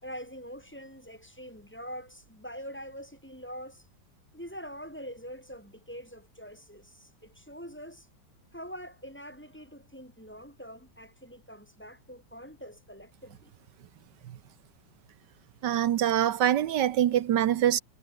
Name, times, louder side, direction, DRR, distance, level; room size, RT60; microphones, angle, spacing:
voice 1, 0.0-3.9 4.3-8.1 8.5-13.5, equal, 5° left, 3.9 m, -44 dB
voice 2, 15.6-17.8, right 11 dB, 85° right, 1.5 m, -24 dB
omnidirectional pair, 1.8 m